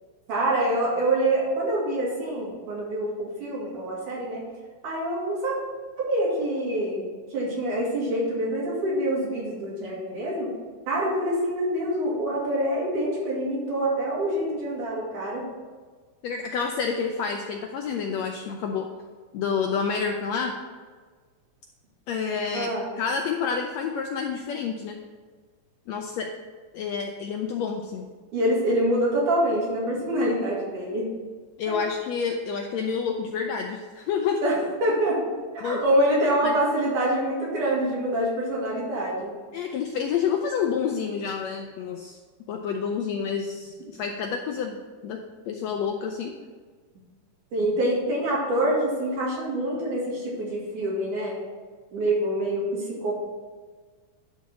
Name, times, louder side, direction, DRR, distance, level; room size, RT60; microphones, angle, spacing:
voice 1, 0.3-4.4 4.8-5.6 6.0-7.0 7.3-10.5 10.9-15.5 22.5-22.9 28.3-31.1 31.7-31.8 34.4-35.2 35.5-39.3 47.5-51.4 51.9-53.1, right 1 dB, 70° right, -5 dB, 3.9 m, -26 dB
voice 2, 16.2-18.9 19.3-20.5 22.1-25.0 25.9-26.3 26.7-28.1 31.6-34.5 35.6-35.8 36.4-36.6 39.5-42.2 42.5-44.8 45.0-45.2 45.5-46.3, left 6 dB, 80° left, 3 dB, 1.5 m, -28 dB
11.0 x 4.1 x 6.0 m, 1.5 s
omnidirectional pair, 3.6 m